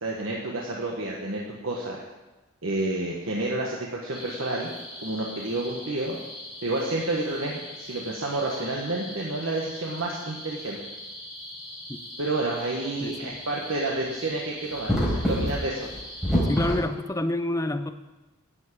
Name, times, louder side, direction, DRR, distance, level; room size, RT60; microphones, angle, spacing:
voice 1, 0.0-2.0 2.6-4.7 5.0-6.2 6.6-10.8 12.2-15.9, right 2 dB, 65° right, -2 dB, 1.5 m, -30 dB
sound 1, 4.1-16.8, equal, ahead, 4.6 m, -33 dB
voice 2, 13.0-13.3 16.5-17.9, left 1 dB, 15° left, 8 dB, 0.6 m, -28 dB
10.5 x 7.4 x 8.6 m, 1.1 s
head